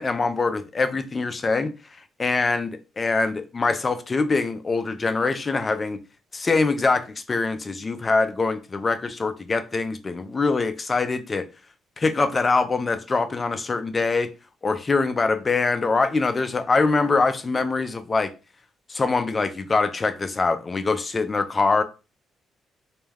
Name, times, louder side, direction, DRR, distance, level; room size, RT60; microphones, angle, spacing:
voice 1, 0.0-1.7 2.2-6.0 6.3-11.4 12.0-14.3 14.6-18.3 18.9-21.8, left 3 dB, 30° left, 0.4 m, -23 dB
2.2 x 2.2 x 3.3 m
cardioid pair, 90°, 0 cm